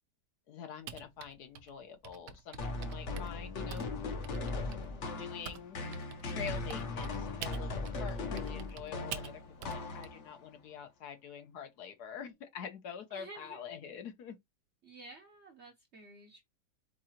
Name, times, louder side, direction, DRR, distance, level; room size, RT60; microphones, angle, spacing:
voice 1, 0.5-3.9 5.1-5.8 6.2-14.4, left 7 dB, 70° left, 1.4 m, -46 dB
Typing, 0.9-5.6 5.9-10.1, right 9 dB, 90° right, 1.3 m, -46 dB
sound 1, 2.6-10.4, left 3 dB, 50° left, 1.1 m, -38 dB
voice 2, 13.1-13.7 14.8-16.4, right 2 dB, 50° right, 1.0 m, -52 dB
4.7 x 3.7 x 2.8 m
omnidirectional pair, 1.8 m